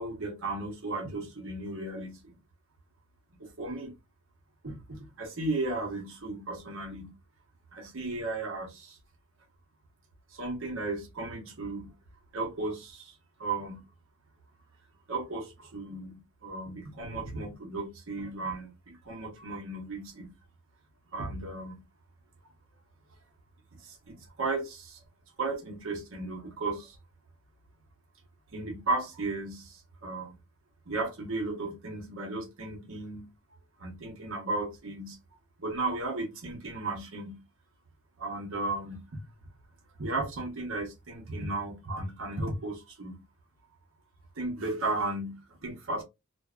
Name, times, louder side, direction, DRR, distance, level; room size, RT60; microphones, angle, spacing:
voice 1, 0.0-2.3 3.4-3.9 4.6-7.1 7.7-9.0 10.3-12.0 12.3-13.8 15.1-20.3 21.1-21.8 23.7-25.0 25.4-27.0 28.5-30.3 30.9-33.3 33.8-35.2 35.6-37.4 38.2-39.2 40.0-43.2 44.4-46.0, right 2 dB, 70° right, 0.8 m, -35 dB
2.6 x 2.1 x 2.3 m
head